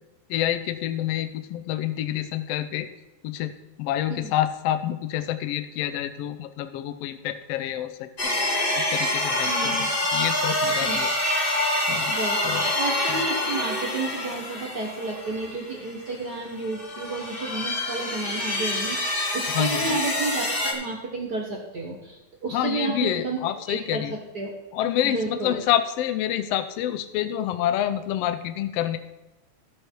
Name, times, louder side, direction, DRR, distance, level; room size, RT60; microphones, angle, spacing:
voice 1, 0.3-2.9 3.2-3.5 3.8-8.3 8.9-11.1 11.9-12.1 12.4-12.7 19.5-20.0 22.5-24.1 24.7-29.0, left 11 dB, 85° left, 11 dB, 1.3 m, -27 dB
sound 1, 8.2-16.1 16.6-20.7, left 1 dB, 70° left, 0.5 m, -26 dB
voice 2, 9.5-9.9 10.8-11.0 12.1-23.4 23.7-24.0 24.3-24.5 25.0-25.6, right 3 dB, 50° right, -1 dB, 1.2 m, -31 dB
13.0 x 7.0 x 4.5 m, 1.0 s
omnidirectional pair, 3.6 m